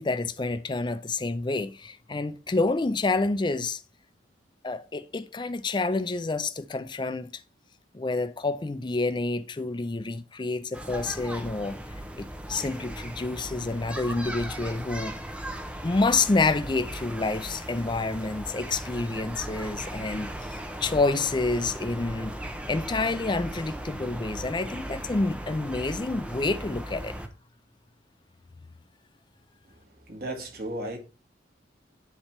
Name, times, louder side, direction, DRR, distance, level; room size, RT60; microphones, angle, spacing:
voice 1, 0.0-3.8 4.6-7.3 7.9-11.8 12.2-15.2 15.8-27.1, left 3 dB, 25° left, 0.5 m, -28 dB
sound 1, 10.7-27.3, right 1 dB, 5° right, 0.7 m, -37 dB
voice 2, 29.6-31.0, right 1 dB, 55° right, 2.1 m, -36 dB
9.8 x 3.5 x 4.3 m
head